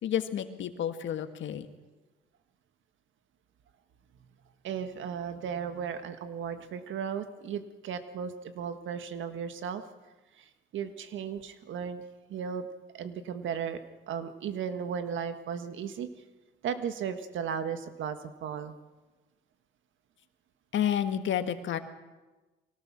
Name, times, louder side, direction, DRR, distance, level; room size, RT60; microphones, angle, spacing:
voice 1, 0.0-1.7 20.7-21.8, left 9 dB, 70° left, 8 dB, 1.6 m, -30 dB
voice 2, 4.6-9.8 10.4-12.7 12.9-13.8 14.1-16.1 16.6-18.7, right 7 dB, 75° right, 9 dB, 1.6 m, -35 dB
23.5 x 17.5 x 6.2 m, 1.2 s
cardioid pair, 90°, 20 cm